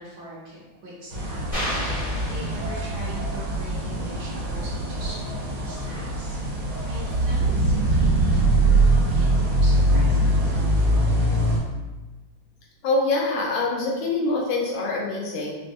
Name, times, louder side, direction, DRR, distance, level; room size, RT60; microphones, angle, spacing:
voice 1, 0.0-1.4 1.7-6.4 6.8-11.5, right 1 dB, 65° right, -7 dB, 1.3 m, -42 dB
sound 1, 1.1-11.6, right 1 dB, 85° right, 1.6 m, -22 dB
sound 2, 1.5-3.2, equal, 25° left, 0.8 m, -31 dB
voice 2, 12.8-15.5, left 3 dB, 80° left, -2 dB, 1.5 m, -24 dB
4.6 x 2.1 x 2.6 m, 1.2 s
omnidirectional pair, 2.2 m